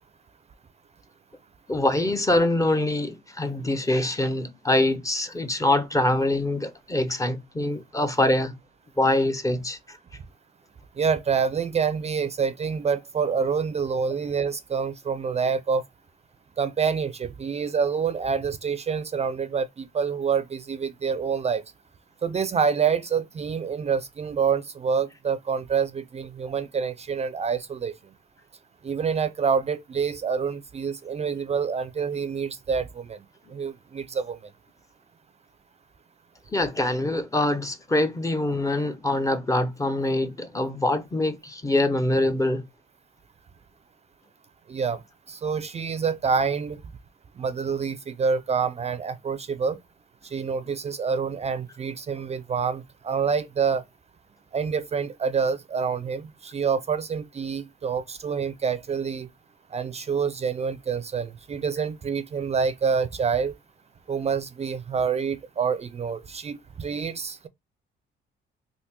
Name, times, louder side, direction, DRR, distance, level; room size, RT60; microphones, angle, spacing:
voice 1, 1.7-8.5 9.0-10.0 36.5-42.6, left 1 dB, 15° left, 0.5 m, -24 dB
voice 2, 11.0-15.8 16.6-21.6 22.2-27.9 28.8-33.2 33.5-34.4 44.7-45.0 45.3-46.8 47.4-49.8 50.3-53.8 54.5-59.3 59.7-63.6 64.1-67.5, right 6 dB, 35° right, 0.4 m, -27 dB
3.4 x 2.6 x 2.9 m
cardioid pair, 90°, 20 cm